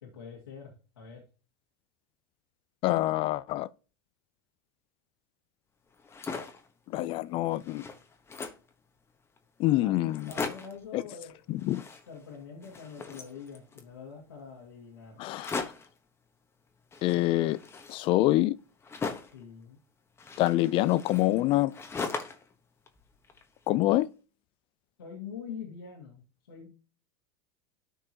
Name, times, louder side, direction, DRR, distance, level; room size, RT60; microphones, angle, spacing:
voice 1, 0.0-1.2 9.8-10.0 10.3-11.4 12.1-15.2 19.3-19.8 25.0-26.7, left 6 dB, 85° left, 2.3 m, -44 dB
voice 2, 2.8-3.7 6.9-7.8 9.6-10.3 10.9-11.0 11.5-11.8 15.2-15.6 17.0-17.6 17.9-18.6 20.4-21.7 23.7-24.1, left 16 dB, 45° left, 0.5 m, -26 dB
sound 1, 5.9-6.7 7.2-7.3 7.5-8.7 9.4-9.5 9.7-9.8 10.1-10.8 11.6-12.4 12.6-13.9 15.3-16.0 16.9-19.4 20.2-22.5 22.9-23.8, left 4 dB, 20° left, 1.3 m, -39 dB
13.0 x 4.6 x 3.0 m
hypercardioid pair, 90°, 12 cm